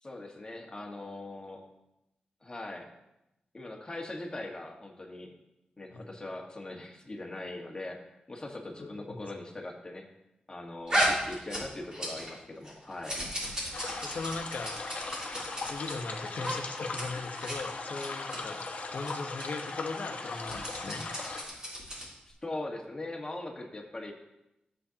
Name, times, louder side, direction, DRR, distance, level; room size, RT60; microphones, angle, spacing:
voice 1, 0.0-1.6 2.4-2.9 3.5-5.3 5.8-8.0 8.3-10.1 10.5-13.2 22.3-24.1, left 2 dB, 25° left, 0 dB, 1.5 m, -41 dB
voice 2, 8.8-9.2 10.9-11.0 14.0-14.8 15.6-18.6 18.9-21.1, left 3 dB, 70° left, 5 dB, 1.0 m, -39 dB
sound 1, 10.9-12.4 12.6-15.9 16.4-16.6 16.8-17.0 17.3-17.6 18.0-18.4 19.0-19.1 19.4-19.5 20.3-22.2, equal, 25° right, 3.2 m, -34 dB
sound 2, 13.7-21.4, left 3 dB, 50° left, 1.1 m, -39 dB
13.5 x 7.6 x 2.9 m, 0.88 s
wide cardioid pair, 120°, 3 cm